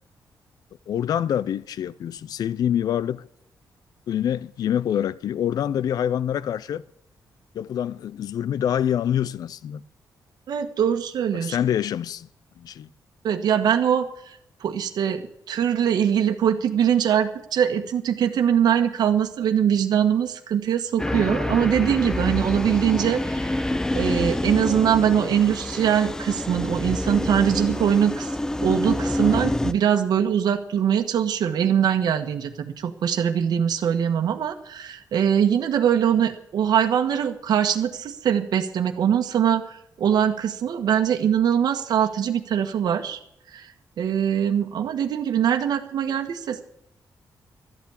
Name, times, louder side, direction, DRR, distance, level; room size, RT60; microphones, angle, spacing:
voice 1, 0.9-3.3 4.1-6.8 7.5-9.8 11.3-12.3 12.6-12.9, left 10 dB, 65° left, 0.4 m, -26 dB
voice 2, 10.5-11.6 13.2-28.3 28.6-43.2 43.5-43.7 44.0-46.6, right 9 dB, 70° right, 1.4 m, -22 dB
sound 1, 21.0-29.7, left 1 dB, 10° left, 0.4 m, -27 dB
13.0 x 8.3 x 8.6 m
wide cardioid pair, 165°, 7 cm